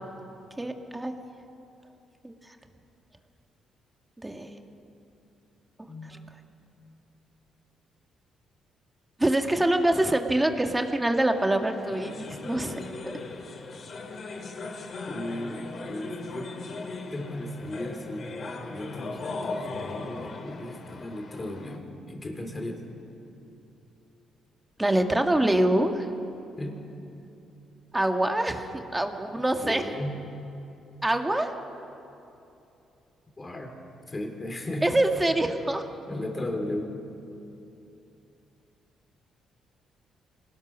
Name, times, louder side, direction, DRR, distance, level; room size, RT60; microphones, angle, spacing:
voice 1, 0.6-1.1 2.2-2.3 4.2-4.5 9.2-12.8 13.1-13.2 24.8-26.1 27.9-29.8 31.0-31.5 34.8-35.8, right 1 dB, 10° right, 5 dB, 1.8 m, -25 dB
voice 2, 5.9-6.3 15.1-16.5 17.1-18.3 18.7-22.8 26.6-26.8 29.6-30.2 33.4-33.7 34.1-34.9 36.1-36.9, left 1 dB, 25° left, 3 dB, 3.9 m, -35 dB
sound 1, 11.0-21.8, left 3 dB, 50° left, 2.6 m, -38 dB
26.0 x 19.5 x 6.3 m, 2.8 s
cardioid pair, 90°, 0 cm